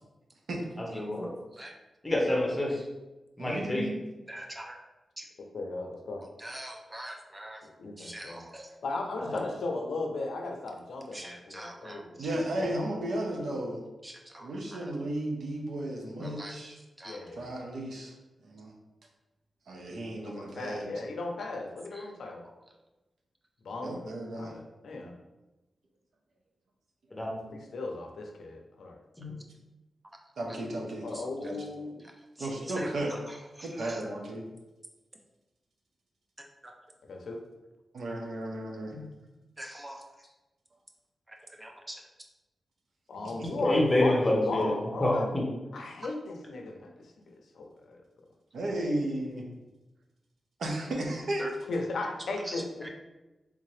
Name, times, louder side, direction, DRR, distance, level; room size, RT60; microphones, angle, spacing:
voice 1, 0.8-1.3 2.0-2.8 3.4-3.8 9.3-9.4 12.7-12.8 16.2-16.3 27.1-27.5 29.2-29.3 38.9-39.0 43.6-44.7 45.0-45.4, left 1 dB, 15° left, -2 dB, 0.7 m, -27 dB
voice 2, 3.4-4.0 12.2-13.8 14.4-16.8 17.4-18.1 18.4-18.7 19.7-20.9 23.8-24.5 30.4-31.1 31.4-31.6 32.4-33.1 33.6-34.4 37.9-39.0 43.2-43.5 48.5-49.5 50.6-51.5, right 1 dB, 75° right, 0 dB, 0.7 m, -34 dB
voice 3, 4.3-4.8 5.2-5.3 6.4-7.6 8.0-8.7 11.1-12.3 14.0-14.9 16.2-16.5 17.0-17.3 21.9-22.1 31.1-31.2 32.4-34.0 36.4-36.7 39.6-40.0 41.3-42.0 51.4-51.5 52.5-52.9, right 1 dB, 15° right, 2 dB, 0.4 m, -44 dB
voice 4, 5.4-6.2 7.6-8.4 8.8-13.0 17.0-17.5 20.1-22.4 23.6-24.0 24.4-25.1 27.5-29.0 31.0-32.0 37.1-37.4 43.1-45.3 45.7-48.0 51.7-52.9, left 3 dB, 75° left, 2 dB, 0.5 m, -37 dB
3.6 x 2.8 x 3.1 m, 1.1 s
wide cardioid pair, 170°, 0 cm